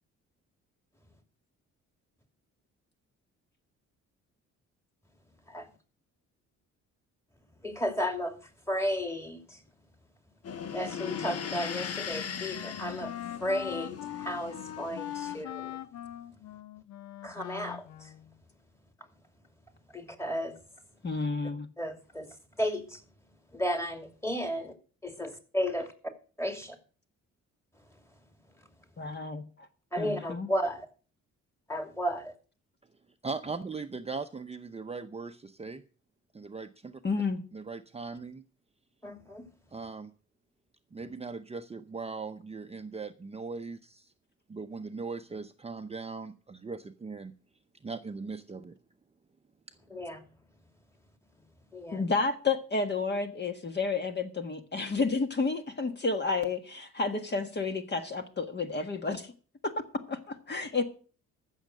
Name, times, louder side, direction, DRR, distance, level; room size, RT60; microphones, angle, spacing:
voice 1, 7.6-8.3 8.7-9.6 10.7-13.1 13.4-15.8 17.2-18.1 19.9-20.5 21.8-22.3 22.6-23.0 23.5-24.7 25.0-25.9 26.4-26.8 29.9-30.8 31.7-32.3 39.0-39.4 49.9-50.2 51.7-52.0, equal, 10° left, 2.7 m, -33 dB
sound 1, 10.4-15.4, left 7 dB, 55° left, 1.2 m, -39 dB
Wind instrument woodwind instrument, 11.0-18.3, left 12 dB, 70° left, 0.9 m, -42 dB
voice 2, 21.0-21.7 29.0-29.4 30.0-30.5 37.0-37.4 51.9-59.3 59.6-59.7 60.1-60.8, left 4 dB, 35° left, 1.5 m, -31 dB
voice 3, 33.2-35.8 36.3-37.0 37.5-38.4 39.7-40.1 40.9-44.1 44.5-47.3 47.8-48.8, right 4 dB, 20° right, 0.7 m, -39 dB
14.5 x 6.5 x 6.5 m
cardioid pair, 90°, 30 cm